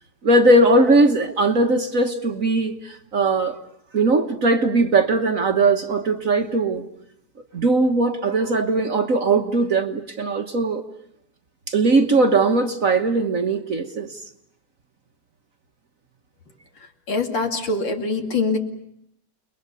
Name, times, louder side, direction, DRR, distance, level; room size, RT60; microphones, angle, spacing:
voice 1, 0.2-3.6 3.9-6.8 7.5-10.8 11.7-14.2, right 2 dB, 45° right, 6 dB, 1.4 m, -19 dB
voice 2, 17.1-18.6, left 3 dB, 65° left, 5 dB, 3.2 m, -23 dB
30.0 x 21.5 x 6.9 m, 0.75 s
omnidirectional pair, 2.2 m